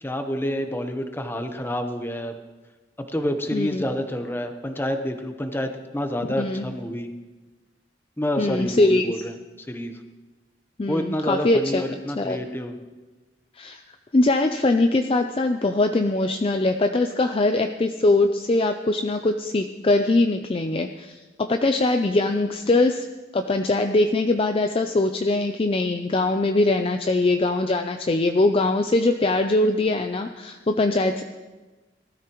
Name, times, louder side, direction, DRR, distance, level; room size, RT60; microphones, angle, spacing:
voice 1, 0.0-2.4 3.1-7.1 8.2-9.3 9.7-10.0 10.9-12.8, left 1 dB, 10° left, 6 dB, 0.9 m, -28 dB
voice 2, 3.5-3.8 6.4-6.6 8.4-9.2 10.8-11.8 12.2-12.4 13.6-13.8 14.1-23.0 23.3-31.2, left 2 dB, 30° left, 6 dB, 0.5 m, -22 dB
18.5 x 13.0 x 3.0 m, 1.2 s
head